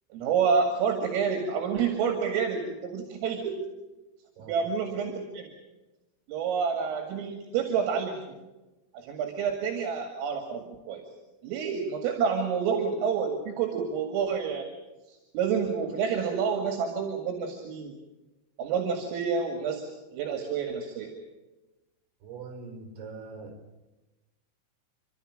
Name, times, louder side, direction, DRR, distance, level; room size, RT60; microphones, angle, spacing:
voice 1, 0.1-3.6 4.5-5.5 6.3-8.4 8.9-11.0 11.4-14.7 15.1-17.9 18.6-21.1, right 6 dB, 85° right, 4 dB, 4.8 m, -29 dB
voice 2, 22.2-23.6, right 4 dB, 65° right, 3 dB, 6.6 m, -42 dB
29.5 x 12.5 x 8.8 m, 1.1 s
omnidirectional pair, 5.8 m